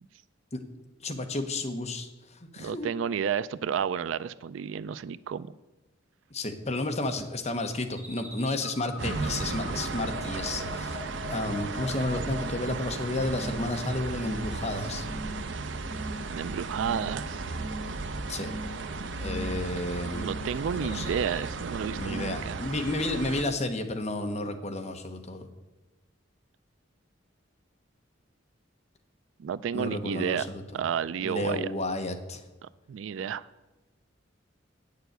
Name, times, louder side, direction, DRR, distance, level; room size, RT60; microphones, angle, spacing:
voice 1, 1.0-2.1 2.4-2.9 6.3-11.0 11.3-15.1 18.3-18.5 19.2-20.3 20.8-21.1 21.9-25.5 29.7-30.6 31.2-32.4, left 2 dB, 35° left, 6 dB, 1.0 m, -32 dB
voice 2, 2.6-5.5 12.0-12.5 16.3-17.4 20.0-22.6 29.4-30.5 30.7-31.7 32.9-33.4, right 7 dB, 90° right, 17 dB, 0.4 m, -31 dB
sound 1, 8.0-12.9 13.3-13.7 14.1-14.6 15.0-15.4 15.8-16.3 16.7-17.2 17.5-18.0 18.3-18.8 19.2-19.7 20.0-20.5 20.9-21.4, left 1 dB, 10° right, 2.1 m, -42 dB
sound 2, 9.0-23.4, right 3 dB, 70° right, 0.7 m, -35 dB
9.0 x 6.8 x 8.0 m, 1.1 s
head